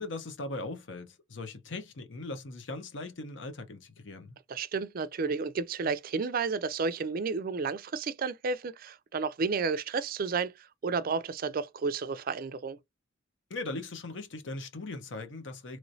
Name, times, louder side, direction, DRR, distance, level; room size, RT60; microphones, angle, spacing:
voice 1, 0.0-4.4 13.5-15.8, left 2 dB, 70° left, 0.8 m, -39 dB
voice 2, 4.5-12.8, right 4 dB, 50° right, 0.4 m, -32 dB
3.1 x 3.0 x 2.6 m
head